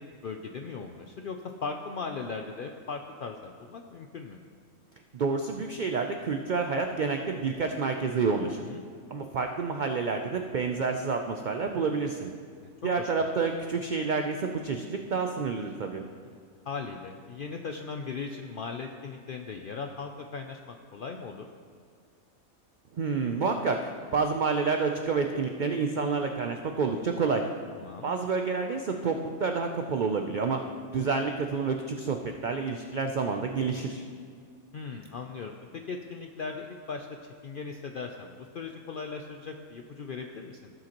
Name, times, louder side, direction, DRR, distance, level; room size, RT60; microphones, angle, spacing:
voice 1, 0.0-4.4 8.6-8.8 12.6-13.3 16.2-16.4 16.7-21.5 27.7-28.1 34.7-37.1 37.4-40.7, left 4 dB, 70° left, 4 dB, 0.5 m, -38 dB
voice 2, 5.1-8.6 9.1-12.3 12.8-16.0 22.9-27.5 28.0-30.6 30.9-34.0, right 4 dB, 75° right, 4 dB, 0.4 m, -29 dB
15.5 x 7.7 x 2.9 m, 2.2 s
omnidirectional pair, 1.4 m